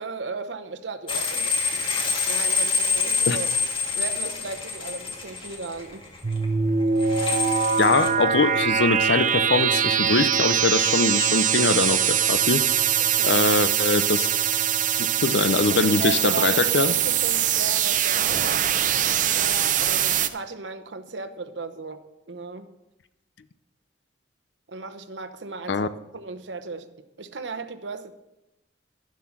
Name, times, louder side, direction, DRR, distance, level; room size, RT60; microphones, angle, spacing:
voice 1, 0.0-3.5 3.9-6.1 13.0-13.5 15.7-18.7 19.3-22.0 22.3-22.7 24.7-26.9 27.2-28.1, right 4 dB, 85° right, 0.9 m, -35 dB
sound 1, 1.1-6.6 6.8-8.1, left 4 dB, 30° left, 1.9 m, -26 dB
sound 2, 6.2-20.3, right 8 dB, 45° right, 0.6 m, -22 dB
voice 2, 7.8-12.6 13.3-14.3 15.0-16.9 25.7-25.9, left 4 dB, 75° left, 0.6 m, -23 dB
11.5 x 7.6 x 6.0 m
head